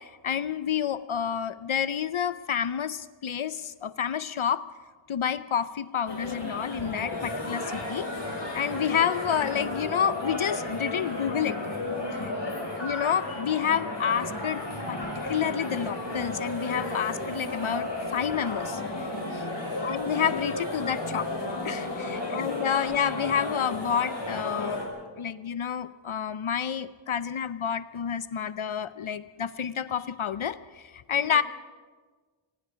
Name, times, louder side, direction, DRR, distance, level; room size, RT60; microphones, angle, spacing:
voice 1, 0.0-4.6 5.1-8.1 8.5-11.6 12.8-14.6 14.9-18.8 19.8-21.3 21.6-24.9 25.2-31.4, left 8 dB, 75° left, 14 dB, 0.7 m, -29 dB
sound 1, 6.1-24.9, left 2 dB, 55° left, 5.6 m, -33 dB
voice 2, 12.1-12.8 19.2-19.9 22.1-22.5 31.1-31.4, left 2 dB, 90° left, -2 dB, 4.6 m, -47 dB
Wind instrument woodwind instrument, 15.3-19.0 19.2-23.1, equal, 10° right, 2.0 m, -48 dB
25.0 x 20.5 x 5.1 m, 1.4 s
wide cardioid pair, 45°, 50 cm